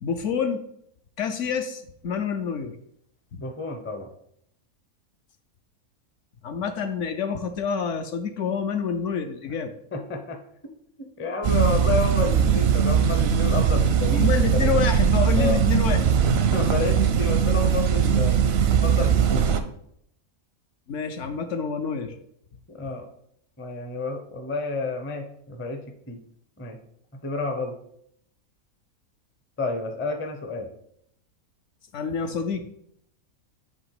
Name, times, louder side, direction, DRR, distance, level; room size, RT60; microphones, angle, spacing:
voice 1, 0.0-0.6 1.2-2.8 3.3-3.4 6.4-9.8 14.1-16.1 20.9-22.2 31.9-32.7, left 6 dB, 65° left, 7 dB, 0.9 m, -27 dB
voice 2, 3.4-4.1 9.9-10.4 11.0-14.7 15.1-15.6 16.3-18.4 18.7-19.8 22.7-23.1 23.6-26.2 26.6-26.8 27.2-27.8 29.6-30.7 32.3-32.4, left 3 dB, 15° left, 5 dB, 0.4 m, -30 dB
sound 1, 11.4-19.6, right 7 dB, 65° right, 0.6 m, -20 dB
7.9 x 3.5 x 4.7 m, 0.71 s
omnidirectional pair, 1.5 m